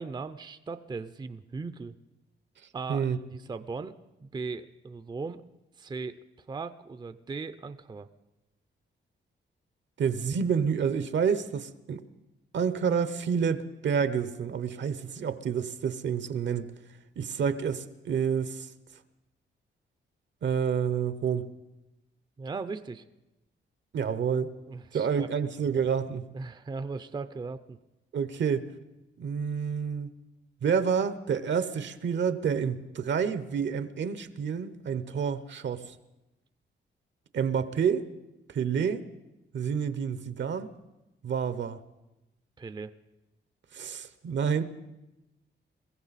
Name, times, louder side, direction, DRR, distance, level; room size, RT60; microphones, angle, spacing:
voice 1, 0.0-1.9 2.7-5.4 5.8-8.1 22.4-23.0 24.7-25.3 26.3-27.8 42.6-42.9, right 4 dB, 20° right, 12 dB, 0.5 m, -38 dB
voice 2, 10.0-12.0 12.5-16.7 17.2-18.7 20.4-21.5 23.9-24.5 24.9-26.3 28.1-28.7 29.2-30.1 30.6-35.9 37.3-38.1 38.5-39.0 39.5-40.7 41.2-41.8 43.7-44.6, right 7 dB, 70° right, 13 dB, 0.9 m, -28 dB
22.0 x 15.0 x 4.1 m, 0.98 s
wide cardioid pair, 115°, 20 cm